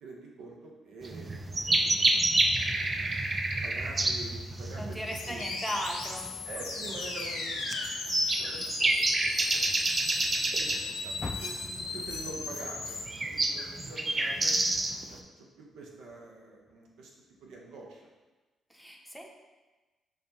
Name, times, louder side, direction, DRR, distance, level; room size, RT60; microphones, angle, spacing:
voice 1, 0.0-2.4 3.6-5.5 6.5-7.7 8.4-8.9 9.4-9.8 10.5-13.0 13.3-14.6 15.1-17.1 17.4-18.1, right 3 dB, 75° right, -1 dB, 0.7 m, -46 dB
sound 1, 1.0-15.2, right 2 dB, 35° right, 0.4 m, -29 dB
voice 2, 4.8-6.3 11.0-11.1 18.7-19.3, equal, 5° right, 1 dB, 0.7 m, -37 dB
sound 2, 5.0-13.0, left 3 dB, 80° left, 0.6 m, -37 dB
Car, 11.2-14.4 14.8-16.2 16.7-16.8 17.4-17.5, left 3 dB, 35° left, 0.3 m, -45 dB
6.0 x 2.3 x 2.8 m, 1.2 s
hypercardioid pair, 45°, 0 cm